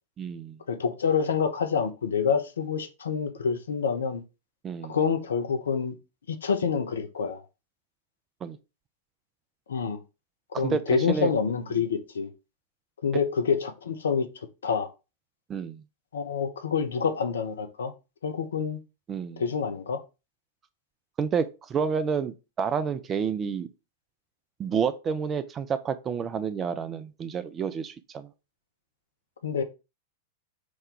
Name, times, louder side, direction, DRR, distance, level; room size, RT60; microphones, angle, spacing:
voice 1, 0.2-0.6 4.6-5.0 8.4-8.6 10.5-10.8 11.1-11.3 15.5-15.8 19.1-19.4 21.2-23.7 24.6-28.3, right 6 dB, 25° right, 0.3 m, -29 dB
voice 2, 0.7-4.2 4.9-5.9 6.3-7.4 9.7-10.0 10.6-12.3 13.0-14.3 14.6-14.9 16.1-17.9 18.2-18.8 19.4-20.0 29.4-29.6, left 6 dB, 65° left, 0.4 m, -27 dB
3.0 x 2.2 x 3.6 m
figure-of-eight pair, 95°, 0 cm